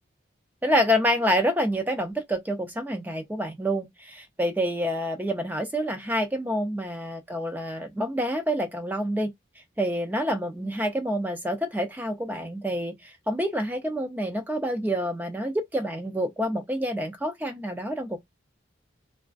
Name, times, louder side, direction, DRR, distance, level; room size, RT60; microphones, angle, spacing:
voice 1, 0.6-9.3 9.8-18.2, equal, 10° right, 0.3 m, -27 dB
3.0 x 2.2 x 2.4 m
head